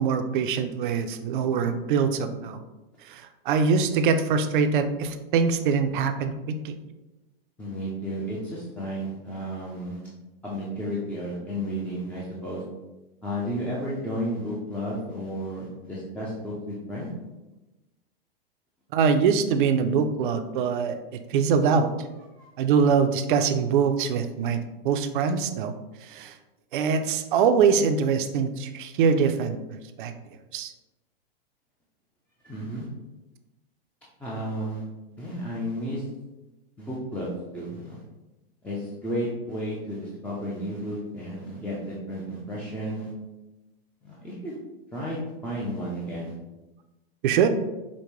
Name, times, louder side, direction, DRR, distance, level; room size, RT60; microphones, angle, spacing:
voice 1, 0.0-2.6 3.1-6.7 18.9-21.9 22.6-25.7 26.0-26.3 26.7-29.6 30.0-30.1 30.5-30.7 47.2-47.5, right 6 dB, 55° right, 8 dB, 0.5 m, -23 dB
voice 2, 7.6-10.0 10.4-12.6 13.2-17.1 22.4-22.5 32.4-32.9 34.2-34.8 35.2-36.0 36.8-38.0 38.6-43.1 44.0-44.6 44.9-46.3, equal, 5° left, -6 dB, 0.4 m, -32 dB
5.1 x 2.1 x 3.0 m, 1.0 s
hypercardioid pair, 125°, 30 cm